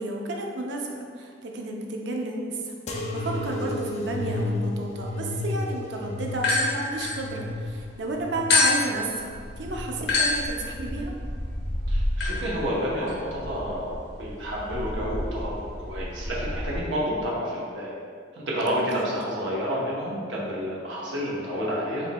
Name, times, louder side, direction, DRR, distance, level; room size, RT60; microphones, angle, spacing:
voice 1, 0.0-2.7 3.1-11.1 18.9-19.1, right 2 dB, 65° right, 0 dB, 0.5 m, -32 dB
sound 1, 2.9-10.1 10.6-11.4 12.1-12.7 13.6-13.7, left 1 dB, 35° left, 0.4 m, -33 dB
sound 2, 6.3-7.8 8.5-16.8, left 2 dB, 60° left, 0.8 m, -28 dB
voice 2, 11.9-18.0 18.3-22.1, equal, 85° right, -5 dB, 0.8 m, -30 dB
4.5 x 4.0 x 2.2 m, 2.1 s
head